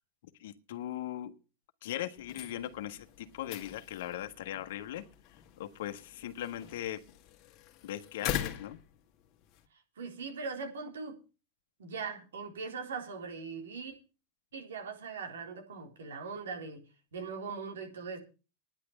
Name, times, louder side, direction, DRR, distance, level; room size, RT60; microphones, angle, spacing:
voice 1, 0.4-1.3 1.8-5.0 5.6-7.0 7.8-8.8, left 12 dB, 70° left, 7 dB, 1.5 m, -39 dB
sound 1, 2.2-9.7, left 11 dB, 45° left, 1.9 m, -42 dB
voice 2, 10.0-11.2 11.8-13.9 14.5-16.8 17.1-18.2, right 5 dB, 85° right, 3 dB, 4.0 m, -40 dB
10.5 x 8.4 x 8.2 m, 0.33 s
hypercardioid pair, 105°, 0 cm